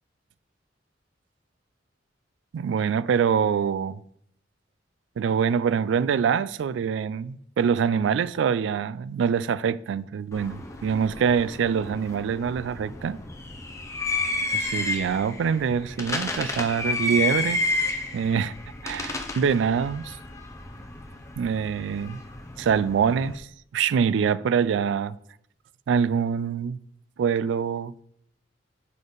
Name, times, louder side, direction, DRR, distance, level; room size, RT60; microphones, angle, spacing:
voice 1, 2.5-4.0 5.2-13.2 14.5-17.7 18.1-18.5 18.8-20.2 21.4-22.2 22.6-23.5 23.7-25.2 25.9-26.8 27.2-28.0, right 7 dB, 80° right, 0.3 m, -25 dB
Fireworks outside of apartment, 10.3-23.4, left 2 dB, 15° left, 0.7 m, -31 dB
7.7 x 5.3 x 3.9 m
head